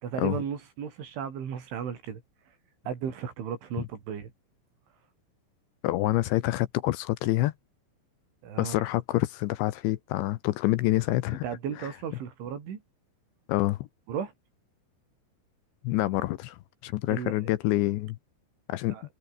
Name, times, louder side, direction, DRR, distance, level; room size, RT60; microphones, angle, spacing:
voice 1, 0.0-2.2 2.9-4.3 8.4-8.8 11.4-12.8 14.1-14.3 17.1-17.5 18.9-19.0, right 8 dB, 70° right, 6.3 m, -35 dB
voice 2, 5.8-7.5 8.6-11.4 13.5-13.9 15.8-18.2 18.7-19.0, left 17 dB, 75° left, 2.9 m, -27 dB
omnidirectional pair, 5.7 m